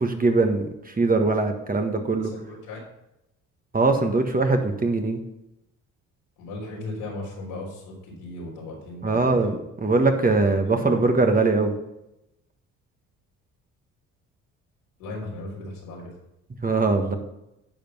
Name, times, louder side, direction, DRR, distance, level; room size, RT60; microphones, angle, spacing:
voice 1, 0.0-2.3 3.7-5.2 9.0-11.7 16.6-17.1, right 3 dB, 25° right, 5 dB, 1.5 m, -22 dB
voice 2, 2.2-2.8 6.4-9.5 10.2-10.4 10.7-11.0 15.0-16.1, left 2 dB, 85° left, -3 dB, 3.6 m, -37 dB
10.5 x 5.2 x 5.5 m, 0.88 s
supercardioid pair, 65°, 34 cm